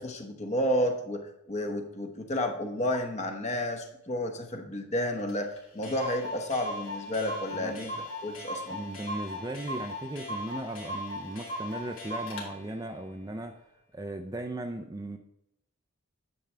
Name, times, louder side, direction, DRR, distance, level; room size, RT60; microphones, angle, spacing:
voice 1, 0.0-7.9 8.2-8.8, left 1 dB, 30° left, 4 dB, 1.0 m, -31 dB
Clock, 5.3-5.4 5.6-5.7 5.8-12.5, equal, 65° left, 2.3 m, -38 dB
voice 2, 8.7-13.5 13.9-15.2, right 1 dB, 15° right, 5 dB, 0.4 m, -37 dB
10.0 x 7.0 x 3.3 m, 0.84 s
head